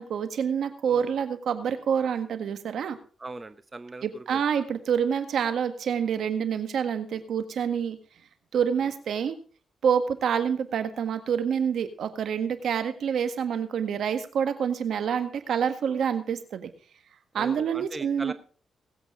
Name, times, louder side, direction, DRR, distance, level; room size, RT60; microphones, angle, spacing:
voice 1, 0.0-3.0 4.0-8.0 8.5-9.4 9.8-16.7 17.3-18.3, right 7 dB, 75° right, 9 dB, 1.6 m, -27 dB
voice 2, 3.2-4.6 17.3-18.3, right 3 dB, 25° right, 11 dB, 0.9 m, -40 dB
21.0 x 8.1 x 3.8 m, 0.41 s
cardioid pair, 80°, 0 cm